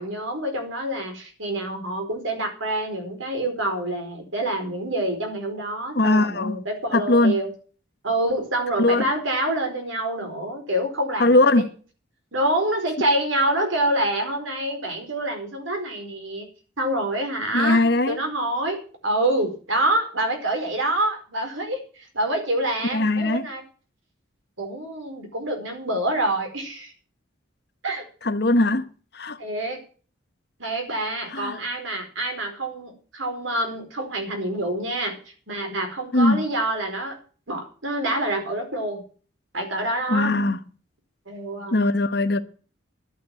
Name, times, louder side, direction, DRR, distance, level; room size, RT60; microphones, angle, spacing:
voice 1, 0.0-7.5 8.0-11.5 12.3-16.5 16.8-23.6 24.6-26.9 27.8-28.1 29.4-29.8 30.6-35.2 35.5-37.2 37.5-39.0 39.5-40.3 41.3-41.7, right 1 dB, 80° right, 4.8 m, -26 dB
voice 2, 5.9-6.6 6.9-7.3 8.8-9.0 11.2-11.6 17.5-18.2 22.9-23.5 28.2-28.9 29.1-29.4 31.3-31.6 36.1-36.5 40.1-40.6 41.7-42.4, left 2 dB, 55° left, 1.1 m, -20 dB
11.5 x 9.0 x 7.8 m
head